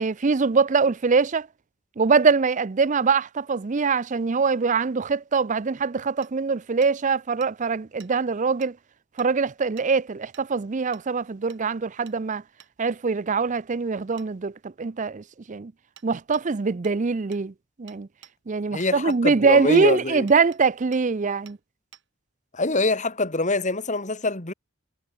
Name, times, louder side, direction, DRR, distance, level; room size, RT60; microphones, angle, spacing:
voice 1, 0.0-1.5 2.0-8.8 9.2-12.4 12.8-15.7 16.0-17.5 17.8-18.1 18.5-21.6, right 4 dB, 35° right, 0.5 m, -23 dB
Hammer, 6.2-6.3 6.8-6.9 7.4-7.5 8.0-8.1 8.6-8.7 9.2-9.3 9.8-9.9 10.3-10.5 10.9-11.1 11.5-11.6 12.1-12.2 12.6-12.7 14.2-14.3 16.0-16.1 16.3-16.5 16.8-17.0 17.3-17.4 17.9-18.3 18.8-19.2 19.8-19.9 20.3-20.6 20.9-21.0 21.5-21.6 21.9-22.0, right 9 dB, 55° right, 7.4 m, -50 dB
voice 2, 18.7-20.3 22.5-24.5, left 2 dB, 35° left, 2.4 m, -25 dB
head